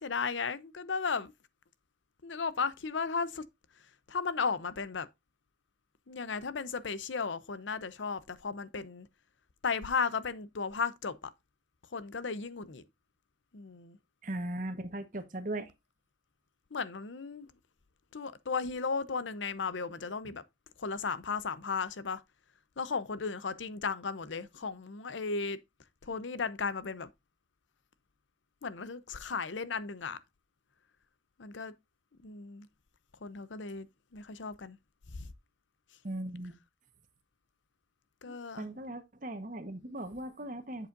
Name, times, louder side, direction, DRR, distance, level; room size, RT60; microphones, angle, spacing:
voice 1, 0.0-1.3 2.2-3.4 4.1-5.1 6.1-9.1 9.6-11.3 11.9-12.8 13.5-14.0 16.7-17.5 18.1-20.4 20.8-22.2 22.8-25.6 26.0-27.1 28.6-30.2 31.4-31.7 32.2-32.7 33.2-33.9 34.1-34.8 35.1-35.3 38.2-38.7, left 5 dB, 85° left, 0.7 m, -35 dB
voice 2, 14.2-15.7 36.0-36.5 38.3-40.9, right 1 dB, 45° right, 1.2 m, -38 dB
7.9 x 7.1 x 2.6 m
head